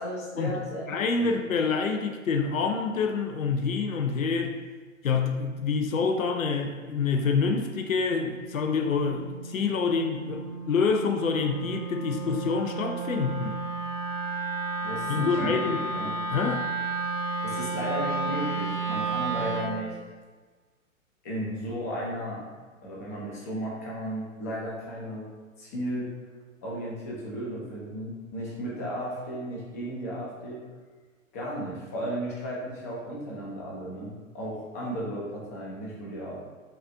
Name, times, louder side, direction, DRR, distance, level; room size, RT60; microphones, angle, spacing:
voice 1, 0.0-0.9 1.2-1.3 14.8-16.1 17.4-20.0 21.2-22.5 22.8-25.3 25.6-26.1 26.6-30.6 31.3-36.4, equal, 15° left, -5 dB, 0.4 m, -34 dB
voice 2, 0.9-4.6 5.0-13.6 15.1-15.8 16.3-16.7, left 5 dB, 80° left, 4 dB, 0.5 m, -27 dB
Wind instrument woodwind instrument, 8.2-19.8, right 3 dB, 75° right, 0.8 m, -32 dB
5.4 x 2.4 x 2.5 m, 1.4 s
figure-of-eight pair, 110°, 40 cm